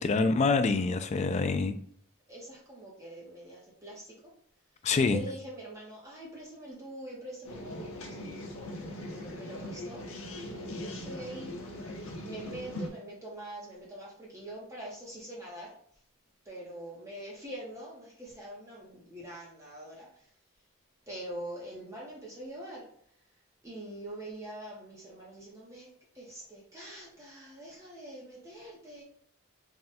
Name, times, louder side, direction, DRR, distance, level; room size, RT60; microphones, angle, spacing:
voice 1, 0.0-1.8 4.8-5.2, left 4 dB, 30° left, 10 dB, 0.3 m, -26 dB
voice 2, 2.3-4.1 5.1-8.4 8.8-10.0 10.4-15.7 16.4-20.3 21.1-22.9 23.6-29.0, right 1 dB, 15° right, -5 dB, 0.9 m, -44 dB
sound 1, 7.4-12.9, left 1 dB, 70° left, 0.8 m, -40 dB
3.6 x 2.3 x 4.1 m, 0.63 s
head